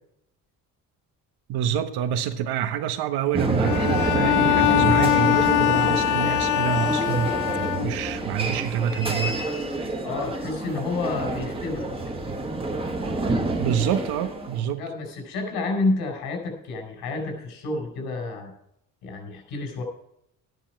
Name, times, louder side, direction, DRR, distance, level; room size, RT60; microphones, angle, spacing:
voice 1, 1.5-7.4 7.8-9.4 13.6-14.8, right 9 dB, 85° right, 1.3 m, -27 dB
sound 1, 3.3-14.6, right 2 dB, 15° right, 1.3 m, -28 dB
Bowed string instrument, 3.6-8.2, left 14 dB, 55° left, 0.8 m, -22 dB
voice 2, 10.0-11.9 14.8-18.5 19.0-19.8, left 3 dB, 85° left, 4.5 m, -29 dB
13.5 x 10.0 x 4.6 m
cardioid pair, 165°, 37 cm